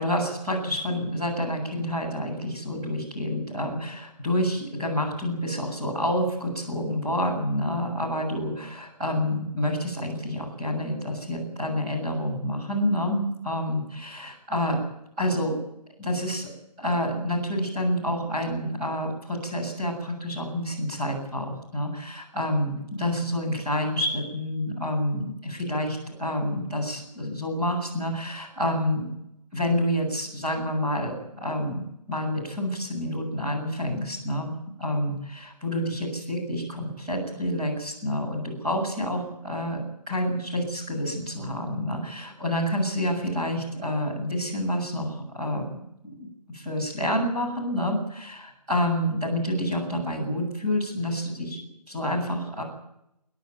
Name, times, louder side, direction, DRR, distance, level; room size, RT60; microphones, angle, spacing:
voice 1, 0.0-14.8 15.2-15.6 16.0-16.5 16.8-29.1 29.5-31.8 32.1-34.5 34.8-39.8 40.1-51.6 51.9-52.6, left 1 dB, 10° right, -6 dB, 7.2 m, -28 dB
29.0 x 11.5 x 9.4 m, 0.81 s
figure-of-eight pair, 170°, 21 cm